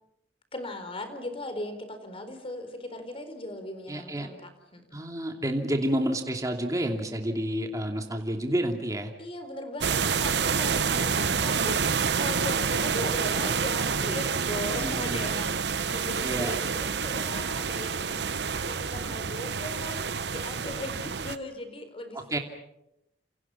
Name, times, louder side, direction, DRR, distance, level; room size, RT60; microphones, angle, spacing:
voice 1, 0.5-5.0 9.2-18.3 18.6-22.4, left 1 dB, 35° left, 8 dB, 4.4 m, -38 dB
voice 2, 3.9-4.3 4.9-9.1 14.8-15.3 16.2-16.5 22.1-22.4, right 1 dB, 20° right, 3 dB, 2.7 m, -29 dB
sound 1, 9.8-21.4, right 6 dB, 70° right, 0.9 m, -28 dB
29.0 x 28.5 x 5.8 m, 0.86 s
head